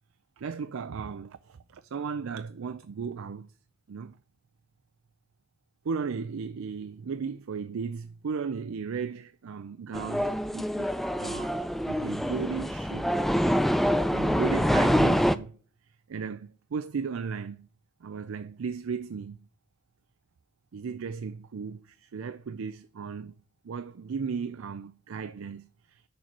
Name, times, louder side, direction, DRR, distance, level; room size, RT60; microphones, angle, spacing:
voice 1, 0.4-3.5 3.9-4.1 5.8-10.9 11.2-11.6 11.9-13.1 14.1-15.6 16.1-17.7 18.0-19.4 20.7-23.3 23.6-26.1, right 5 dB, 85° right, 0.4 m, -35 dB
sound 1, 9.9-15.4, equal, ahead, 0.3 m, -26 dB
6.7 x 4.4 x 5.8 m
head